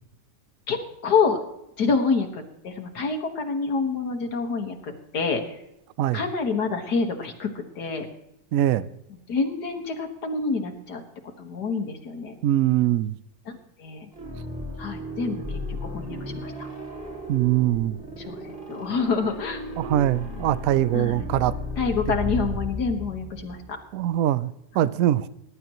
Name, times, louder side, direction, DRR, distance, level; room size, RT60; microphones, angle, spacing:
voice 1, 0.7-1.4 1.8-5.6 6.1-7.5 7.8-8.1 9.3-11.0 11.4-12.3 13.5-14.1 14.8-16.7 18.2-19.6 20.9-21.3 21.8-23.8, left 4 dB, 75° left, 2.1 m, -27 dB
voice 2, 8.5-8.9 12.4-13.2 17.3-18.0 19.8-21.6 23.9-25.3, right 13 dB, 70° right, 0.9 m, -22 dB
sound 1, 14.1-23.9, left 1 dB, 15° right, 4.0 m, -35 dB
21.0 x 11.0 x 3.0 m
omnidirectional pair, 1.7 m